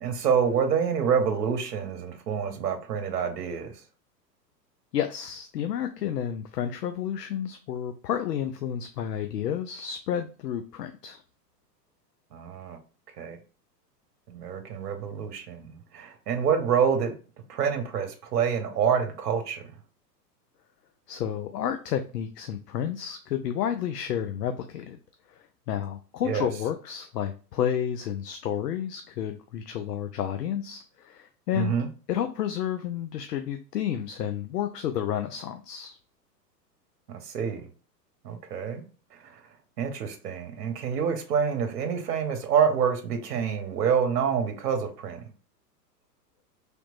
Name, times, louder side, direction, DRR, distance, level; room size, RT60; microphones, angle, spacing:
voice 1, 0.0-3.7 12.3-12.8 13.2-13.4 14.3-17.1 17.5-19.6 26.2-26.5 31.5-31.9 37.1-37.6 38.2-38.8 39.1-39.4 39.8-45.2, right 7 dB, 65° right, 0.9 m, -27 dB
voice 2, 4.9-11.2 21.1-25.0 25.3-31.8 32.1-36.0, left 9 dB, 75° left, 0.5 m, -31 dB
3.3 x 3.0 x 2.4 m
figure-of-eight pair, 105°, 50 cm